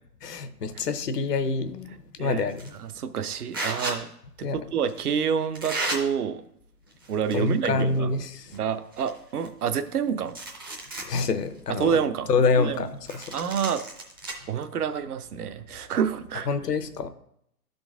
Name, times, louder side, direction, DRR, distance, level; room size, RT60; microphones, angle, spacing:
voice 1, 0.2-1.9 2.2-2.7 4.4-4.6 7.3-8.5 11.0-11.9 12.3-12.9 13.1-13.3 16.5-17.1, left 4 dB, 80° left, 11 dB, 0.9 m, -26 dB
sound 1, 2.5-2.8 3.5-4.0 4.9-5.0 5.5-6.0 6.9-7.5 7.9-8.0 8.5-8.6 8.9-9.9 10.3-11.1 11.6-11.7 13.1-14.3, right 2 dB, 15° right, 0.5 m, -33 dB
voice 2, 2.8-4.1 4.4-6.4 7.1-8.1 8.5-10.4 11.7-12.3 12.6-12.8 13.3-13.8 14.5-16.5, right 7 dB, 70° right, 10 dB, 0.8 m, -28 dB
12.0 x 3.9 x 3.5 m, 0.74 s
hypercardioid pair, 145°, 47 cm